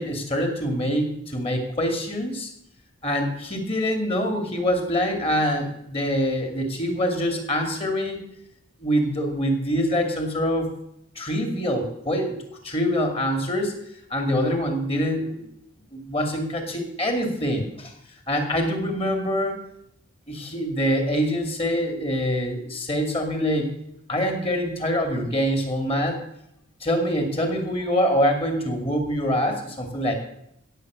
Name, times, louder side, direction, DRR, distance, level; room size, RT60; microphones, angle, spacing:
voice 1, 0.0-2.5 3.0-8.2 8.8-10.7 11.2-12.4 12.6-13.8 14.1-15.5 15.9-17.9 18.3-19.6 20.3-23.7 24.1-26.2 26.8-30.1, equal, 25° left, 4 dB, 2.5 m, -25 dB
16.5 x 7.8 x 6.3 m, 0.77 s
head